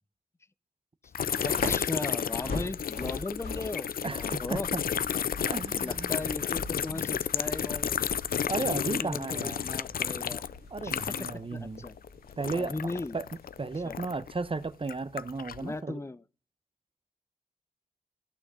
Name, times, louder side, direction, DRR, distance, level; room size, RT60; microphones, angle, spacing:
sound 1, 1.1-11.5 11.8-14.3 14.8-15.6, left 8 dB, 70° left, 0.4 m, -32 dB
sound 2, 1.2-14.7, left 3 dB, 85° left, 3.3 m, -42 dB
voice 1, 1.4-4.7 5.8-8.1 8.6-10.4 10.8-11.9 12.5-13.2 13.8-14.0 15.6-16.2, left 2 dB, 15° left, 0.6 m, -37 dB
voice 2, 4.0-4.8 5.4-6.2 6.9-7.1 8.5-9.6 10.7-11.9 12.4-12.7 13.1-13.3 13.6-16.0, right 3 dB, 35° right, 0.8 m, -34 dB
14.0 x 6.3 x 4.9 m
cardioid pair, 50°, 15 cm